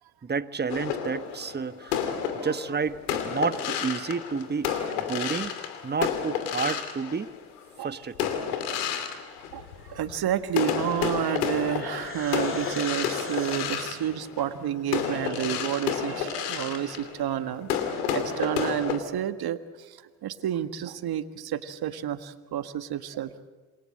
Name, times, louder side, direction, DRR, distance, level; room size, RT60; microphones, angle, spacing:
voice 1, 0.2-2.1 2.4-4.7 5.1-5.5 5.8-7.3 7.8-8.3, right 5 dB, 20° right, 14 dB, 1.2 m, -30 dB
sound 1, 0.7-7.6 8.1-10.2 10.5-19.0, left 8 dB, 85° left, 2.7 m, -31 dB
voice 2, 8.5-9.2 9.5-23.3, right 10 dB, 55° right, 11 dB, 1.8 m, -30 dB
sound 2, 10.9-14.3, left 3 dB, 25° left, 3.6 m, -41 dB
28.0 x 21.5 x 7.8 m, 1.4 s
hypercardioid pair, 60°, 45 cm